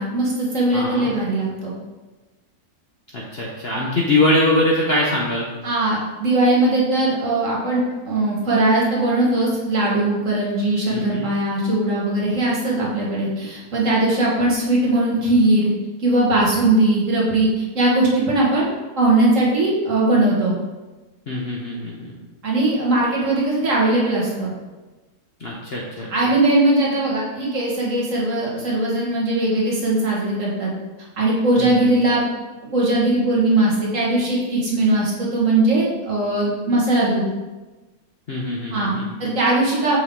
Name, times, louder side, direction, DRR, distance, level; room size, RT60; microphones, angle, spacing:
voice 1, 0.0-1.7 5.6-15.7 16.0-18.7 19.0-20.5 22.4-24.5 26.1-30.7 31.2-32.3 32.6-37.2 38.7-38.9 39.2-40.0, right 2 dB, 50° right, -4 dB, 1.7 m, -19 dB
voice 2, 0.7-1.1 3.1-5.5 10.9-11.3 21.3-22.1 25.4-26.1 31.6-31.9 38.3-39.1, left 1 dB, 45° left, -4 dB, 0.9 m, -22 dB
6.4 x 5.2 x 3.7 m, 1.2 s
omnidirectional pair, 1.9 m